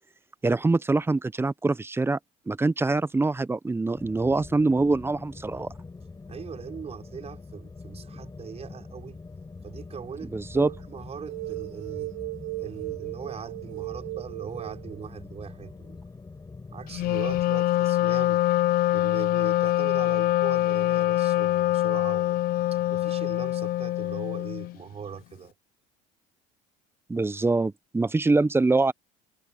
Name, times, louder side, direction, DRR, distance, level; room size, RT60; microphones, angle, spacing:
voice 1, 0.4-2.2 2.5-5.7 10.3-10.7 27.1-28.9, right 3 dB, 15° right, 0.8 m, -24 dB
sound 1, 4.0-17.4, left 4 dB, 20° left, 4.7 m, -44 dB
voice 2, 6.3-9.2 9.6-10.3 10.6-12.1 12.6-16.0 16.7-18.4 18.9-22.4 22.7-25.5, right 7 dB, 35° right, 5.1 m, -40 dB
sound 2, 10.5-10.8 11.3-15.1, right 32 dB, 80° right, 4.1 m, -36 dB
Wind instrument woodwind instrument, 16.9-24.8, left 15 dB, 60° left, 0.7 m, -24 dB
supercardioid pair, 85°, 17 cm